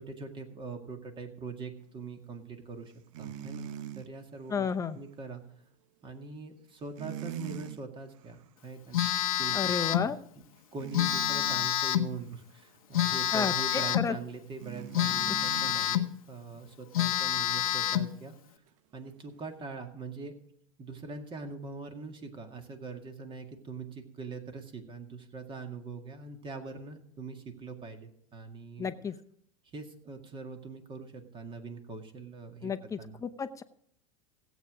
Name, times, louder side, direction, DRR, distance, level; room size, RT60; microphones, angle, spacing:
voice 1, 0.0-2.9 3.2-3.7 3.9-5.4 6.0-9.1 9.4-10.4 10.7-18.6 18.9-20.3 20.8-28.9 29.7-33.2, right 4 dB, 30° right, 6 dB, 2.0 m, -43 dB
sound 1, 3.1-4.1 7.0-7.8 8.2-8.5 10.8-11.7 14.6-15.9 19.0-19.1, right 10 dB, 65° right, 0.9 m, -41 dB
voice 2, 4.5-5.0 9.5-10.2 13.3-14.2 15.3-15.4 28.8-29.1 32.6-33.6, left 6 dB, 20° left, 11 dB, 0.8 m, -32 dB
Telephone, 8.9-10.1 10.9-12.1 12.9-14.1 14.9-16.1 16.6-16.7 16.9-18.1, left 11 dB, 85° left, 0.8 m, -28 dB
16.5 x 8.1 x 5.0 m, 0.69 s
hypercardioid pair, 110°, 18 cm